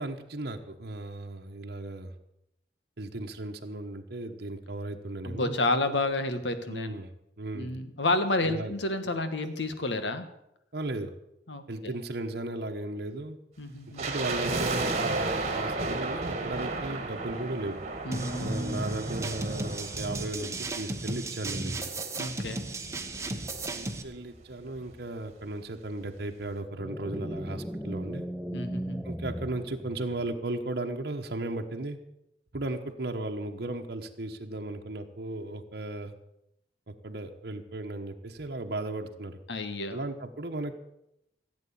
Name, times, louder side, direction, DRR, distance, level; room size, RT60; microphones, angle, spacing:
voice 1, 0.0-2.1 3.0-5.6 6.7-7.1 7.4-7.7 8.4-8.7 10.7-11.1 11.7-13.4 14.0-17.8 18.4-21.9 23.7-28.3 29.0-32.0 32.5-36.1 36.9-39.4 39.9-40.8, right 2 dB, 60° right, 3 dB, 1.1 m, -36 dB
voice 2, 5.2-6.9 7.5-10.2 11.5-11.9 13.6-14.1 18.0-18.9 22.2-22.7 28.5-29.0 39.5-40.0, left 2 dB, 85° left, 9 dB, 1.6 m, -30 dB
sound 1, 14.0-21.2 21.5-21.6 22.3-24.1 24.3-24.4 24.7-25.0 25.4-25.5, right 3 dB, 40° right, 2.0 m, -34 dB
sound 2, 18.1-24.0, right 2 dB, 15° right, 1.2 m, -35 dB
sound 3, 26.8-30.4, equal, ahead, 0.5 m, -37 dB
15.5 x 8.3 x 8.5 m, 0.82 s
head